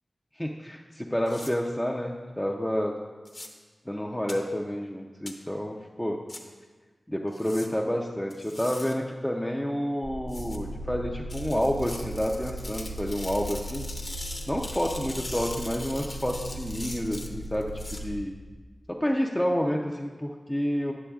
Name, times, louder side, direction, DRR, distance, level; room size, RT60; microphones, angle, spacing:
voice 1, 0.3-2.9 3.9-6.2 7.1-13.9 14.5-18.3 18.9-20.9, equal, 5° left, -1 dB, 0.4 m, -29 dB
sound 1, 1.3-1.5 3.2-3.5 4.3-4.4 5.3-5.4 6.3-6.4 7.3-7.7 8.3-8.9 10.3-10.6 11.3-18.0, left 2 dB, 40° left, 0.7 m, -41 dB
sound 2, 10.0-18.2, right 1 dB, 40° right, 0.7 m, -38 dB
9.9 x 7.0 x 2.3 m, 1.4 s
wide cardioid pair, 95°, 0 cm